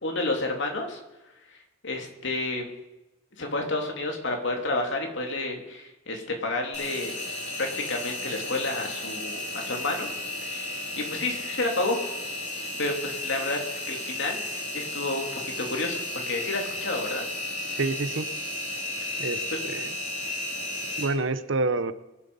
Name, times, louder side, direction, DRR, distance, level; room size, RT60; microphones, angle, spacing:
voice 1, 0.0-1.0 1.5-2.7 3.4-7.1 7.6-10.1 10.4-10.8 11.1-12.0 12.8-17.2 19.5-19.6, left 2 dB, 60° left, 2 dB, 2.9 m, -30 dB
Engine, 6.7-21.0, left 2 dB, 35° left, 6.3 m, -34 dB
voice 2, 17.7-18.3 19.2-19.9 21.0-21.9, right 3 dB, 65° right, 13 dB, 0.8 m, -28 dB
23.0 x 7.9 x 5.5 m, 0.97 s
head